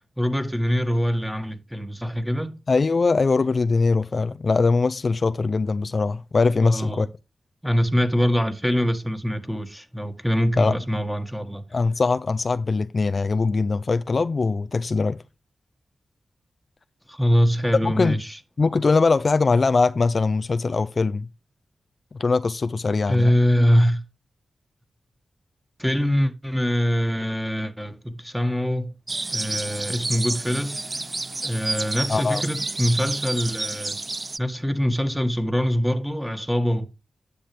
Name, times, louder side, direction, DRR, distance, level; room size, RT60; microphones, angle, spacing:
voice 1, 0.2-2.6 6.6-7.1 7.6-11.6 17.1-18.4 23.1-24.0 25.8-28.9 29.3-30.9 31.4-34.0 34.4-36.9, equal, 5° right, 1.7 m, -23 dB
voice 2, 2.7-7.1 10.6-10.8 11.7-15.2 17.8-18.2 18.6-21.3 22.2-23.3 32.1-32.4, left 4 dB, 55° left, 0.4 m, -21 dB
sound 1, 29.1-34.4, right 2 dB, 40° right, 0.4 m, -30 dB
10.0 x 7.2 x 3.3 m
cardioid pair, 45°, 0 cm